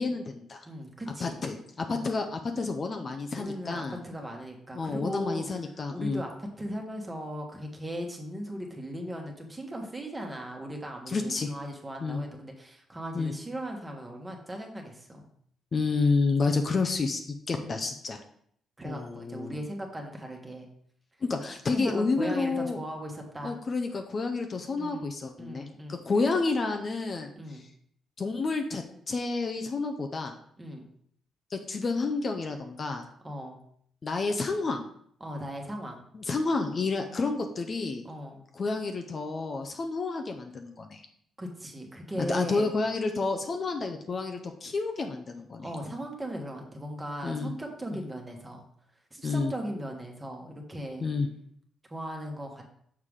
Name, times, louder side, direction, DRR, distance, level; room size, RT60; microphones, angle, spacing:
voice 1, 0.0-0.6 1.2-4.0 4.7-6.2 11.1-11.5 12.0-12.2 13.1-13.3 15.7-18.2 18.8-19.6 21.2-22.8 23.4-27.7 28.2-30.4 31.5-33.1 34.0-34.8 36.1-38.0 38.5-41.0 42.2-45.7 47.2-47.5 49.2-49.5 51.0-51.3, left 3 dB, 40° left, 4 dB, 0.7 m, -30 dB
voice 2, 0.6-1.4 1.9-2.1 3.3-5.6 5.9-15.3 17.6-17.8 18.8-20.7 21.7-23.6 24.8-25.1 25.4-26.0 27.3-27.6 30.6-30.9 33.2-33.6 35.2-36.0 37.0-37.3 38.0-38.4 41.4-42.7 45.6-48.6 49.1-51.1 51.9-52.6, equal, 15° right, 1 dB, 1.4 m, -38 dB
6.6 x 4.7 x 3.7 m, 0.66 s
cardioid pair, 90°, 0 cm